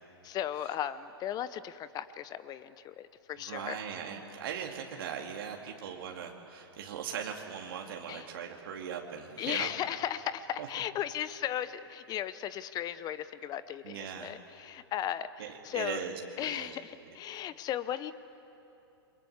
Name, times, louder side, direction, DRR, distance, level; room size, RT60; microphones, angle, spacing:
voice 1, 0.2-3.8 8.1-8.3 9.4-16.0 16.4-18.1, left 11 dB, 30° left, 15 dB, 0.8 m, -36 dB
voice 2, 3.4-9.7 10.6-10.7 13.8-14.3 15.4-16.8, right 7 dB, 60° right, 1 dB, 2.4 m, -39 dB
28.5 x 24.0 x 8.1 m, 2.9 s
hypercardioid pair, 110°, 13 cm